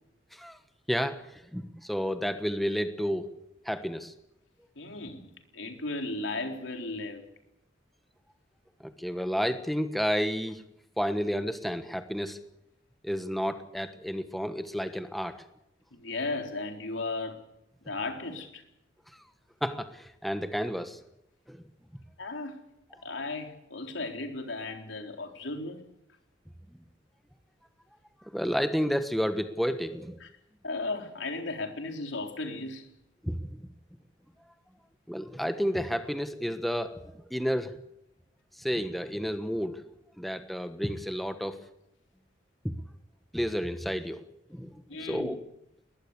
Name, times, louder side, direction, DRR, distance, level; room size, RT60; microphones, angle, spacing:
voice 1, 0.9-3.3 3.6-4.1 8.8-10.6 11.0-12.4 13.0-15.4 19.6-21.0 21.5-21.6 28.3-30.2 33.2-33.6 35.1-37.7 38.6-39.8 40.2-41.6 42.6-42.7 43.3-44.2 44.5-45.4, equal, ahead, 8 dB, 1.3 m, -31 dB
voice 2, 4.8-7.2 15.9-17.4 17.8-18.6 22.2-22.6 23.0-25.9 30.2-30.3 30.6-32.9 44.9-45.4, left 2 dB, 80° left, 4 dB, 4.0 m, -35 dB
22.0 x 19.0 x 8.3 m, 0.80 s
head